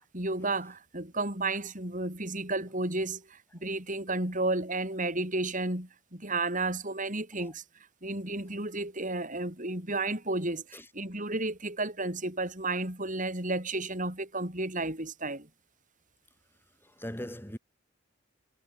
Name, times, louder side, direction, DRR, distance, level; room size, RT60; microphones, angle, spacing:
voice 1, 0.1-7.6 8.0-15.5, right 2 dB, 40° right, 7.0 m, -32 dB
voice 2, 16.8-17.6, equal, 10° left, 2.7 m, -40 dB
head